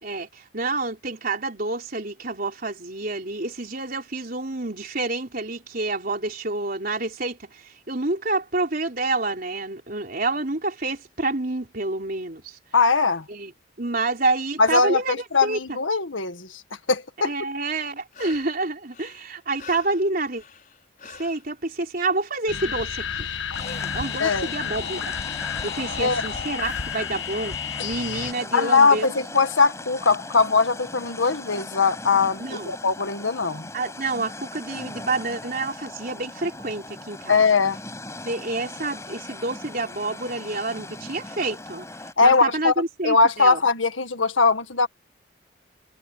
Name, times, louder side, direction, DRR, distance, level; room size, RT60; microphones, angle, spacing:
voice 1, 0.0-12.6 13.3-13.5 13.8-15.8 17.2-20.4 21.0-23.3 23.9-25.1 25.6-27.5 27.8-29.2 32.4-32.7 33.7-37.4 38.2-41.9 42.2-43.6, right 3 dB, 50° right, 4.1 m, -28 dB
voice 2, 12.7-13.2 14.6-16.5 16.9-17.3 24.2-24.5 26.0-26.2 28.5-33.7 37.3-37.8 42.2-42.7 43.0-44.9, left 4 dB, 90° left, 1.8 m, -20 dB
sound 1, 17.7-18.6 18.9-21.5 23.5-24.2 26.6-27.1 30.0-30.1, left 4 dB, 45° left, 6.3 m, -44 dB
sound 2, 22.5-28.3, left 7 dB, 75° left, 1.4 m, -31 dB
sound 3, 23.5-42.1, left 2 dB, 15° left, 5.5 m, -39 dB
head